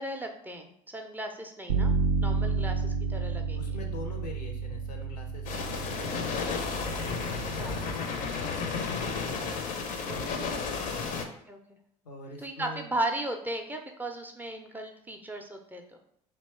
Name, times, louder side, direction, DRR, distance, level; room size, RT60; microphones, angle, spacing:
voice 1, 0.0-1.9 2.2-3.6 7.6-7.8 10.1-10.6 11.5-11.6 12.4-15.8, right 1 dB, 10° right, 3 dB, 0.4 m, -36 dB
Bass guitar, 1.7-7.9, right 5 dB, 75° right, 0.4 m, -31 dB
voice 2, 3.5-7.8 8.1-10.1 10.9-11.2 12.0-12.9, left 3 dB, 80° left, 4 dB, 0.6 m, -44 dB
sound 1, 5.5-11.3, left 5 dB, 40° left, 0.5 m, -33 dB
2.9 x 2.2 x 4.1 m, 0.69 s
figure-of-eight pair, 65°, 20 cm